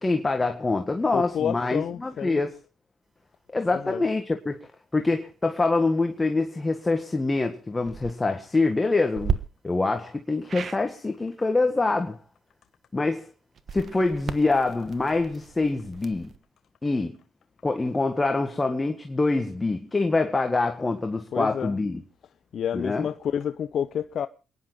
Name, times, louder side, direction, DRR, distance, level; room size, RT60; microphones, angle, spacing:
voice 1, 0.0-2.6 3.5-4.6 4.9-9.4 9.6-12.2 12.9-13.3 13.7-16.3 16.8-17.2 17.6-22.0 22.7-23.1, left 3 dB, 20° left, 1.7 m, -25 dB
voice 2, 1.1-2.4 3.7-4.0 21.3-21.7 22.5-24.3, left 8 dB, 60° left, 0.7 m, -29 dB
sound 1, 7.8-8.1 9.1-9.4 10.5-10.8 13.5-16.4, right 7 dB, 55° right, 1.3 m, -33 dB
28.5 x 10.5 x 3.9 m
cardioid pair, 90°, 0 cm